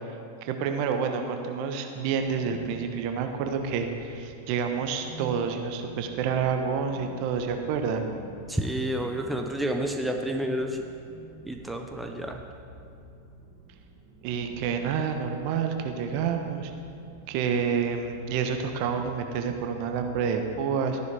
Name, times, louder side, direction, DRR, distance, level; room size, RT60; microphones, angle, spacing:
voice 1, 0.4-8.0 14.2-16.7 17.3-21.0, right 6 dB, 50° right, 5 dB, 1.1 m, -28 dB
sound 1, 2.7-20.5, right 2 dB, 25° right, 2.2 m, -48 dB
voice 2, 8.5-10.8 11.5-12.4, equal, 5° right, 4 dB, 0.7 m, -30 dB
13.0 x 10.5 x 3.5 m, 2.5 s
figure-of-eight pair, 90°, 0 cm